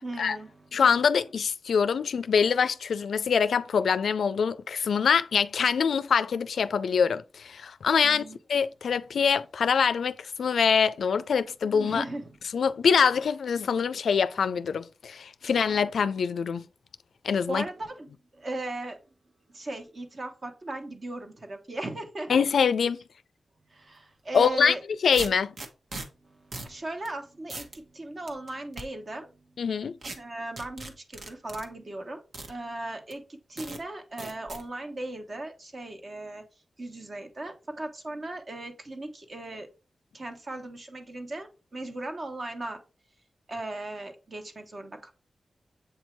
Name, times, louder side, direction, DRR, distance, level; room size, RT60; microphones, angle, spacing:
voice 1, 0.0-0.7 8.0-8.4 11.6-12.4 17.5-18.1 18.3-19.0 19.5-22.3 23.7-24.8 26.2-29.4 30.2-32.2 32.5-36.4 36.8-39.7 40.1-42.8 43.5-45.1, right 2 dB, 45° right, 1.2 m, -37 dB
voice 2, 0.7-8.2 8.5-12.0 12.5-16.6 17.2-17.6 22.3-23.0 24.3-24.7 25.0-25.5 29.6-30.0, left 6 dB, 90° left, 0.3 m, -24 dB
sound 1, 24.3-24.5 25.1-26.1 26.5-26.7 27.1-27.2 27.5-27.8 28.3-28.8 30.0-30.2 30.6-31.7 32.3-32.5 33.1-33.2 33.6-33.8 34.2-34.6, right 2 dB, 65° right, 1.1 m, -38 dB
7.8 x 2.7 x 4.5 m
wide cardioid pair, 95°, 0 cm